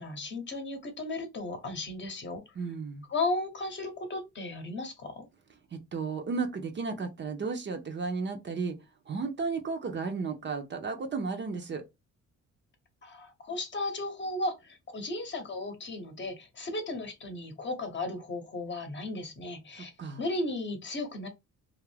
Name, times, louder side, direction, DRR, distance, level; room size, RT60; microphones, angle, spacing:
voice 1, 0.0-2.4 3.1-5.3 13.0-19.9 20.2-21.3, left 2 dB, 40° left, 0.9 m, -35 dB
voice 2, 2.6-3.1 5.7-8.8 9.1-11.8 19.8-20.2, right 4 dB, 40° right, 0.6 m, -34 dB
2.4 x 2.1 x 3.2 m
cardioid pair, 90°, 30 cm